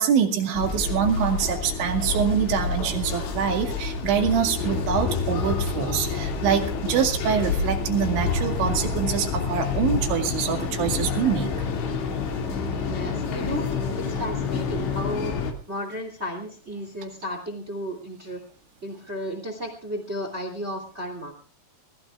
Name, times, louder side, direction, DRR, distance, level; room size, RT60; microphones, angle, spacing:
voice 1, 0.0-11.5, right 8 dB, 65° right, 3 dB, 4.3 m, -25 dB
sound 1, 0.5-15.5, left 5 dB, 60° left, 4.4 m, -28 dB
voice 2, 12.8-13.7 14.0-15.4 15.7-18.4 18.8-21.3, equal, 20° right, 5 dB, 1.9 m, -33 dB
23.5 x 20.5 x 2.4 m, 0.42 s
omnidirectional pair, 6.0 m